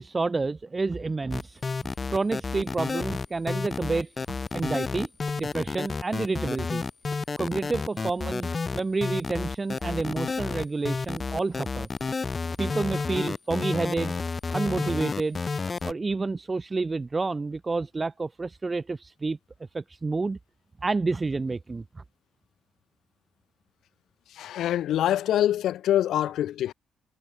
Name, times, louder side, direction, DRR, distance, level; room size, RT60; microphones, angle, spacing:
voice 1, 0.0-5.1 5.4-6.8 7.4-11.9 12.6-14.1 14.5-15.4 15.8-19.4 19.7-20.4 20.8-22.0, right 3 dB, 25° right, 0.6 m, -29 dB
sound 1, 1.3-15.9, left 4 dB, 30° left, 1.3 m, -30 dB
voice 2, 24.3-26.7, left 12 dB, 75° left, 0.4 m, -25 dB
cardioid pair, 90°, 0 cm